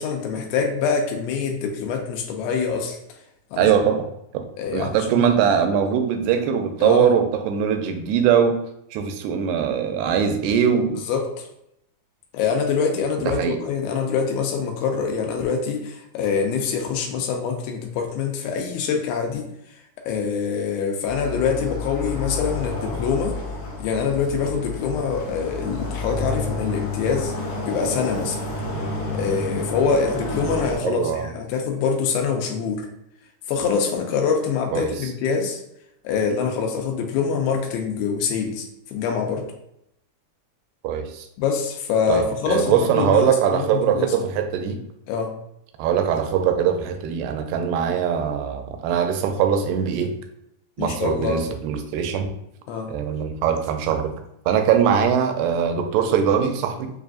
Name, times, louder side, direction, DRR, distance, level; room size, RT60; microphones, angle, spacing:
voice 1, 0.0-3.0 3.5-3.7 4.6-5.3 6.8-7.1 11.1-11.5 12.3-19.5 20.1-23.4 23.8-27.3 27.6-28.4 29.1-32.9 33.5-35.6 36.0-38.7 38.9-39.5 41.4-44.1 45.1-45.3 50.8-51.4 52.7-52.9, left 6 dB, 80° left, 2 dB, 2.5 m, -24 dB
voice 2, 3.6-4.1 4.3-4.5 4.7-8.6 8.9-11.0 13.2-13.6 30.8-31.3 34.7-34.9 40.8-41.2 42.1-44.8 45.8-50.1 50.8-52.3 52.9-54.1 54.5-56.9, right 8 dB, 85° right, 5 dB, 2.6 m, -21 dB
sound 1, 21.1-30.8, left 2 dB, 65° left, 2.2 m, -30 dB
6.6 x 2.5 x 2.4 m, 0.79 s
omnidirectional pair, 4.5 m